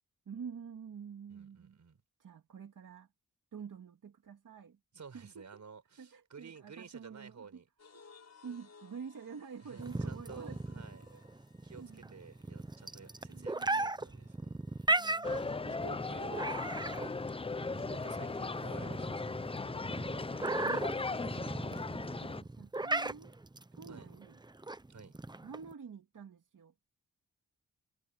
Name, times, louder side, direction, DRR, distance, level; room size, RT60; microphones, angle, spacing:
voice 1, 0.3-1.8 2.2-3.1 3.5-4.8 5.1-5.6 6.0-7.5 7.9-8.1 8.4-11.3 11.8-12.2 13.3-13.9 15.0-15.9 18.3-18.4 19.9-21.3 21.9-23.4 23.7-24.4 25.4-26.7, right 6 dB, 80° right, 2.4 m, -49 dB
voice 2, 1.3-2.0 4.9-7.7 9.6-11.0 11.6-14.5 15.8-16.5 17.9-19.3 23.9-24.1 24.9-25.2, right 6 dB, 65° right, 5.0 m, -52 dB
sound 1, 7.8-16.2, left 5 dB, 55° left, 7.7 m, -63 dB
sound 2, 9.8-25.7, right 2 dB, 15° right, 0.8 m, -37 dB
sound 3, 15.2-22.4, left 3 dB, 20° left, 0.5 m, -38 dB
wide cardioid pair, 95°, 31 cm